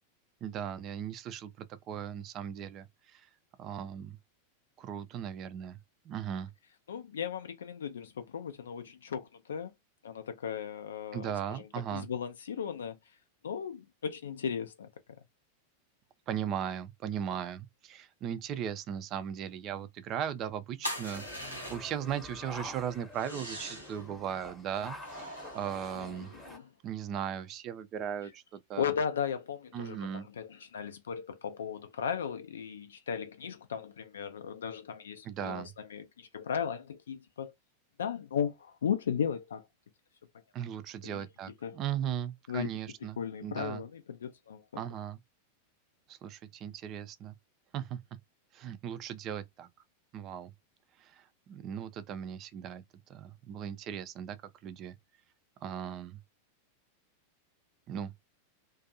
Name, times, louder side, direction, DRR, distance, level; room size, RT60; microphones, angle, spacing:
voice 1, 0.4-2.9 3.1-3.3 3.6-4.2 4.8-5.8 6.1-6.5 11.1-12.1 16.3-26.3 26.8-28.4 28.7-28.9 29.7-30.3 35.2-35.7 40.5-43.8 44.8-45.2 46.1-47.4 47.7-48.0 48.5-49.7 50.1-50.5 51.0-52.8 53.1-54.4 54.6-55.0 55.6-56.2 57.9-58.1, right 9 dB, 35° right, 0.4 m, -37 dB
voice 2, 6.9-9.7 10.0-13.0 13.4-14.9 26.0-26.7 28.8-37.5 38.0-39.6 41.0-41.3 41.6-41.8 42.5-42.7 43.2-44.8, left 7 dB, 65° left, 0.4 m, -36 dB
sound 1, 20.8-22.1 23.1-24.0 25.0-26.6, equal, 85° left, 0.9 m, -42 dB
sound 2, 21.1-26.6, left 1 dB, 10° left, 0.9 m, -47 dB
2.5 x 2.3 x 2.6 m
figure-of-eight pair, 90°, 0 cm